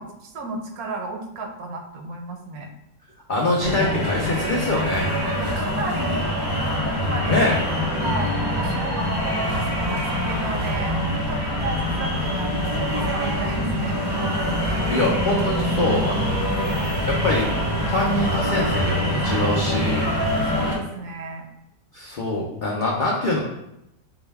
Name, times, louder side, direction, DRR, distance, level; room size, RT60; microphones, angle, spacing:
voice 1, 0.0-2.7 5.4-6.3 6.8-7.4 8.0-14.1 14.6-14.8 15.9-16.0 16.6-17.0 20.5-21.5, right 2 dB, 75° right, 3 dB, 1.1 m, -33 dB
voice 2, 3.3-5.0 7.2-7.6 14.7-16.7 17.0-17.5 17.9-20.1 21.9-23.4, left 2 dB, 70° left, -3 dB, 0.4 m, -24 dB
sound 1, 3.6-20.8, equal, 30° right, 0.4 m, -24 dB
4.6 x 2.1 x 3.3 m, 0.85 s
omnidirectional pair, 1.6 m